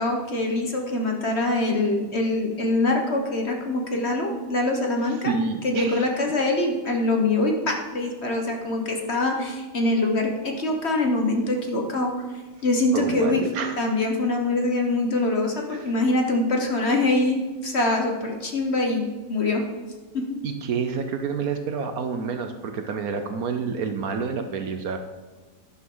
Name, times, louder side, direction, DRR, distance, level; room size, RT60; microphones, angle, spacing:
voice 1, 0.0-5.3 5.6-12.1 12.6-13.4 13.8-19.6 20.1-20.4, left 2 dB, 40° left, 2 dB, 1.4 m, -24 dB
voice 2, 5.2-6.1 12.9-13.8 15.7-15.9 20.4-25.0, right 5 dB, 65° right, 6 dB, 1.2 m, -28 dB
11.5 x 10.5 x 3.9 m, 1.3 s
omnidirectional pair, 1.8 m